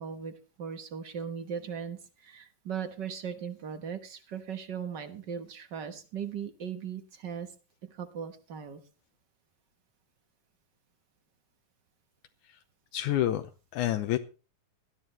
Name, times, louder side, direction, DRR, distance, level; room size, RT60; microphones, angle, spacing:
voice 1, 0.0-7.5 7.8-8.8, right 7 dB, 50° right, 9 dB, 1.4 m, -38 dB
voice 2, 12.9-14.2, left 13 dB, 80° left, 8 dB, 2.3 m, -28 dB
19.5 x 13.0 x 3.2 m, 0.33 s
omnidirectional pair, 3.6 m